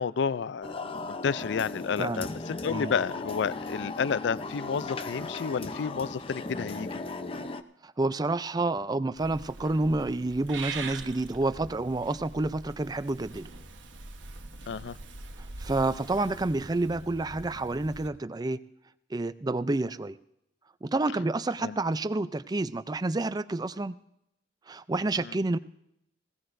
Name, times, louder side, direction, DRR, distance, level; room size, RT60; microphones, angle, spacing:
voice 1, 0.0-7.0 14.7-15.0 21.6-21.8 25.2-25.3, left 6 dB, 70° left, 18 dB, 0.4 m, -31 dB
sound 1, 0.6-7.6, left 3 dB, 30° left, 0.6 m, -37 dB
voice 2, 2.0-2.3 2.7-2.9 7.8-13.5 15.6-18.6 19.1-20.2 20.8-24.0 24.7-25.6, right 2 dB, 20° right, 13 dB, 0.4 m, -29 dB
Purr / Meow, 9.2-18.1, right 3 dB, 85° right, 1.2 m, -43 dB
20.0 x 16.5 x 2.6 m, 0.81 s
head